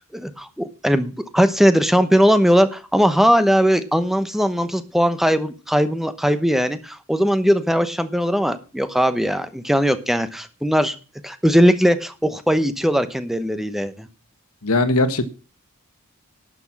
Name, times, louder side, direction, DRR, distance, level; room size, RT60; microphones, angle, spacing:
voice 1, 0.0-10.9 11.2-14.1, equal, ahead, 11 dB, 0.9 m, -19 dB
voice 2, 14.6-15.2, left 2 dB, 80° left, 11 dB, 1.4 m, -19 dB
12.0 x 6.1 x 7.4 m, 0.34 s
head